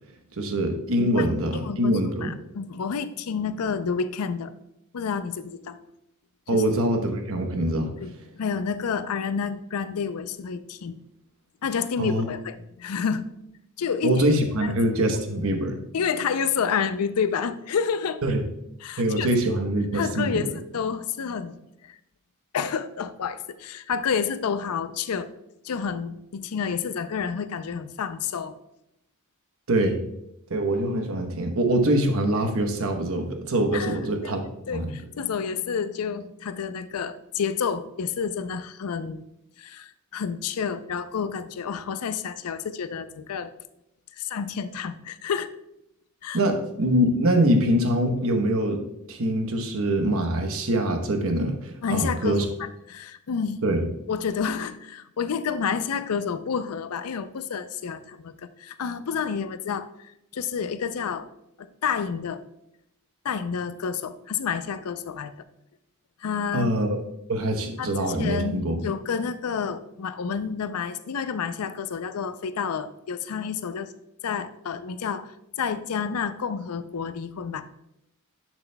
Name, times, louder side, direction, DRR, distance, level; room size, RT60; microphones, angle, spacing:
voice 1, 0.4-2.3 6.5-7.9 12.0-12.3 14.0-15.8 18.2-18.4 19.0-20.4 29.7-30.0 30.5-34.5 34.7-34.9 46.3-48.8 49.1-52.4 53.6-53.8 66.5-67.0 67.3-68.8, right 1 dB, 70° right, 5 dB, 1.0 m, -24 dB
voice 2, 1.0-4.5 4.9-5.8 6.5-6.6 8.0-11.0 11.6-13.3 13.8-14.2 14.6-14.9 15.9-18.2 18.8-19.3 19.9-22.0 22.5-25.3 25.6-28.6 33.7-34.3 34.7-39.2 39.6-43.5 44.2-45.5 46.2-46.4 51.8-53.6 54.1-61.3 61.6-62.4 63.2-65.3 66.2-66.7 67.8-73.9 74.2-75.3 75.6-77.6, left 6 dB, 80° left, 12 dB, 0.5 m, -29 dB
11.0 x 6.1 x 2.2 m, 0.83 s
head